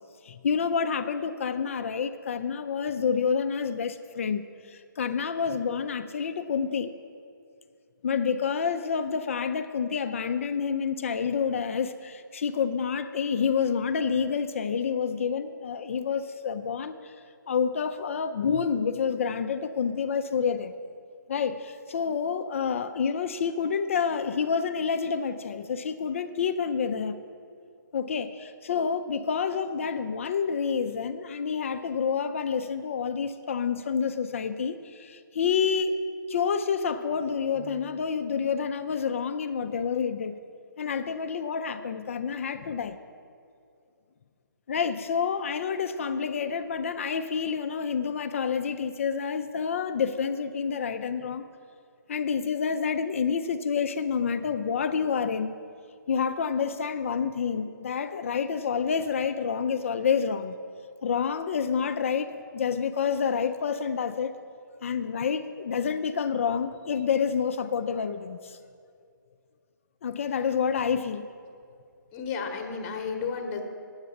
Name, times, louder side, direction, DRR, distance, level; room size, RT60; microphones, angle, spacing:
voice 1, 0.2-6.9 8.0-17.2 17.5-20.7 21.3-27.2 27.9-36.0 36.3-40.4 40.8-43.0 44.7-51.5 52.1-55.5 56.1-60.6 61.0-64.3 64.8-68.6 70.0-71.3, left 6 dB, 40° left, 10 dB, 0.4 m, -28 dB
voice 2, 72.1-73.6, left 5 dB, 25° left, 4 dB, 1.0 m, -32 dB
9.1 x 8.0 x 7.0 m, 2.3 s
figure-of-eight pair, 145°, 11 cm